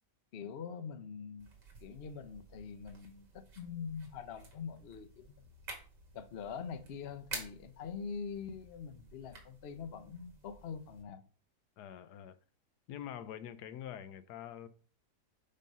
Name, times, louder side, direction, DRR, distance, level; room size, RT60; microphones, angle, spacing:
voice 1, 0.3-1.5 1.8-5.5 6.1-11.2, left 6 dB, 55° left, 0.7 m, -44 dB
sound 1, 1.4-11.0, right 3 dB, 85° right, 2.5 m, -51 dB
voice 2, 11.8-12.4 12.9-14.7, left 10 dB, 75° left, 1.2 m, -45 dB
5.5 x 5.2 x 5.4 m
omnidirectional pair, 1.8 m